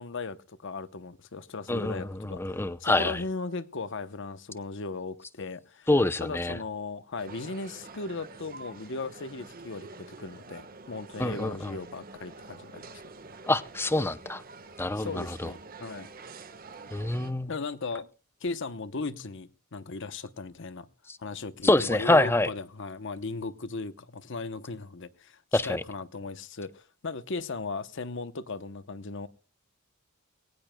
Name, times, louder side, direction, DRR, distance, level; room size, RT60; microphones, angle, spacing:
voice 1, 0.0-5.9 6.2-12.9 15.0-16.1 17.5-18.1 18.4-20.9 21.2-29.3, left 3 dB, 60° left, 13 dB, 0.9 m, -37 dB
voice 2, 1.7-3.2 5.9-6.6 11.2-11.7 13.5-14.4 14.8-15.5 16.9-17.5 21.6-22.5 25.5-25.8, left 2 dB, 10° left, 14 dB, 0.6 m, -26 dB
sound 1, 7.2-17.3, right 3 dB, 40° right, 1.4 m, -47 dB
21.0 x 18.0 x 2.3 m, 0.34 s
head